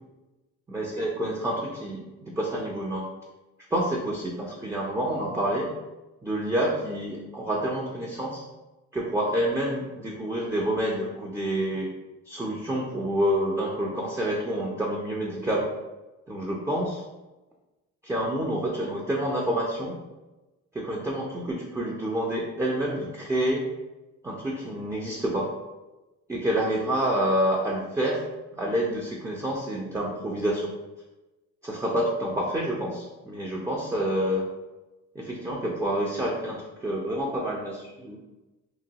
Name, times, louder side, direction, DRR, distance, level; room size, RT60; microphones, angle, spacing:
voice 1, 0.7-3.1 3.7-5.7 6.2-8.4 8.9-11.9 12.3-15.7 16.3-17.0 18.0-20.0 20.7-23.7 24.2-25.5 26.3-28.2 28.5-30.7 31.6-34.5 35.2-38.2, right 1 dB, 10° right, -3 dB, 0.4 m, -28 dB
2.9 x 2.2 x 2.7 m, 1.1 s
cardioid pair, 90°, 30 cm